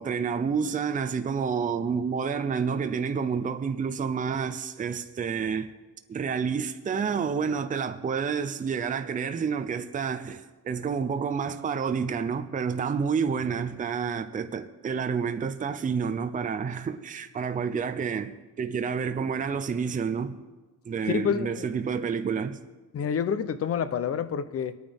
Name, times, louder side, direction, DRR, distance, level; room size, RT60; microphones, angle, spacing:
voice 1, 0.0-5.7 6.1-20.4 20.9-22.6, right 6 dB, 20° right, 0.5 m, -29 dB
voice 2, 21.1-21.6 22.9-24.8, left 7 dB, 40° left, 0.6 m, -28 dB
23.5 x 9.1 x 3.5 m
cardioid pair, 175°, 36 cm